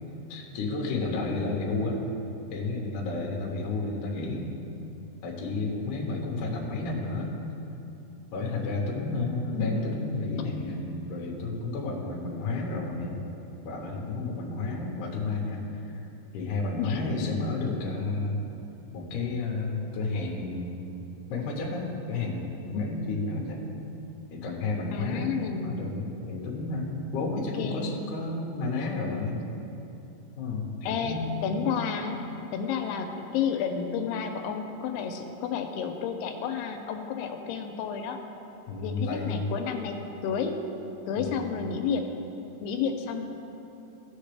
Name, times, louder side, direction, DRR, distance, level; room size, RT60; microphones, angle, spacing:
voice 1, 0.3-2.0 2.5-4.5 5.2-7.4 8.3-13.2 13.6-15.9 16.3-18.4 18.9-20.8 21.3-23.7 24.3-29.4 30.4-31.4 38.7-39.5 41.2-41.6, left 3 dB, 65° left, -1 dB, 2.2 m, -31 dB
voice 2, 1.5-1.9 9.5-9.9 16.8-17.2 24.9-25.8 27.3-28.1 30.9-32.2 32.5-38.2 38.8-40.0 40.2-40.6 41.1-42.1 42.6-43.2, left 6 dB, 85° left, 5 dB, 2.6 m, -31 dB
14.5 x 6.8 x 3.3 m, 2.9 s
omnidirectional pair, 4.6 m